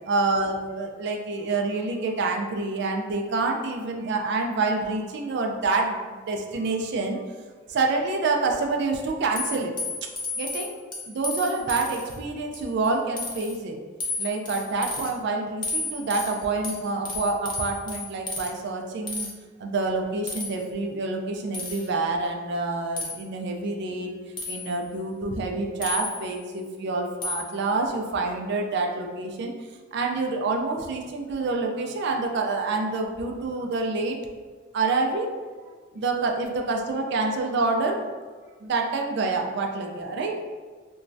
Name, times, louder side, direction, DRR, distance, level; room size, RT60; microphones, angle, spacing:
voice 1, 0.1-7.2 7.7-9.7 10.4-10.7 11.1-13.8 14.2-19.3 19.6-24.2 24.5-29.5 29.9-34.2 34.7-35.3 35.9-38.0 38.6-40.3, right 3 dB, 60° right, 2 dB, 0.4 m, -27 dB
sound 1, 9.4-12.2 12.5-12.9 13.2-13.6 14.0-15.1 15.6-18.5 19.1-19.3 20.3-20.6 21.5-21.9 23.0-23.2 24.4-24.8 25.8-26.4 27.2-27.6, left 3 dB, 25° left, 0.4 m, -33 dB
3.0 x 2.2 x 2.5 m, 1.5 s
head